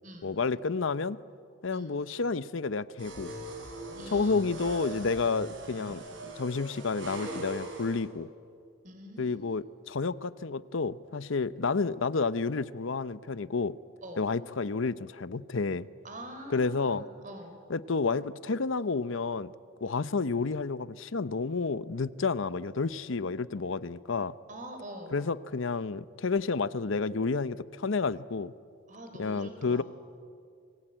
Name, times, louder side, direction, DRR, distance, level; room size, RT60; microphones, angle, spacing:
voice 1, 0.2-1.2 1.6-3.3 4.1-6.0 6.4-8.3 9.2-13.7 14.2-15.9 16.5-17.0 17.7-19.5 19.8-24.3 25.1-28.5 29.2-29.8, left 4 dB, 70° left, 16 dB, 0.7 m, -30 dB
sound 1, 3.0-8.0, right 1 dB, 65° right, 6.0 m, -41 dB
voice 2, 3.9-4.7 8.8-9.6 14.0-14.2 16.0-17.5 24.5-25.2 28.9-29.8, right 1 dB, 40° right, 5 dB, 4.3 m, -45 dB
29.5 x 22.5 x 9.0 m, 2.4 s
head